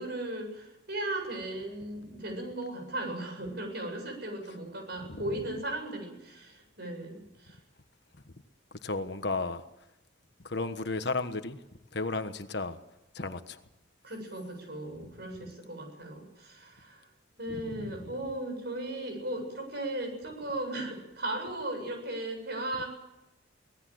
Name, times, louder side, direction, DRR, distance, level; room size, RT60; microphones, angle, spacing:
voice 1, 0.0-7.6 14.0-17.0 17.4-22.9, right 1 dB, 50° right, 4 dB, 7.8 m, -37 dB
voice 2, 8.8-9.6 10.4-11.6 11.9-12.8 13.1-13.4 17.6-17.9, left 3 dB, 55° left, 9 dB, 1.3 m, -33 dB
24.5 x 18.5 x 7.8 m, 0.94 s
head